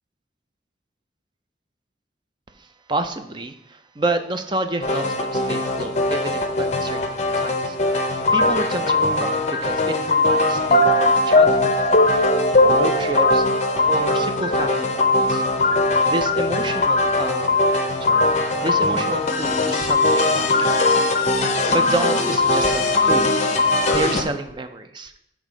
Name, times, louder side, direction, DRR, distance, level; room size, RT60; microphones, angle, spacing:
voice 1, 2.6-7.0 7.4-7.8 8.1-11.8 12.6-13.5 13.9-15.8 16.0-17.7 18.0-18.2 18.6-21.1 21.5-23.3 23.9-25.1, right 2 dB, 25° right, 8 dB, 0.4 m, -29 dB
sound 1, 4.8-24.2, left 2 dB, 40° left, 0.6 m, -20 dB
7.3 x 3.6 x 5.0 m, 0.78 s
head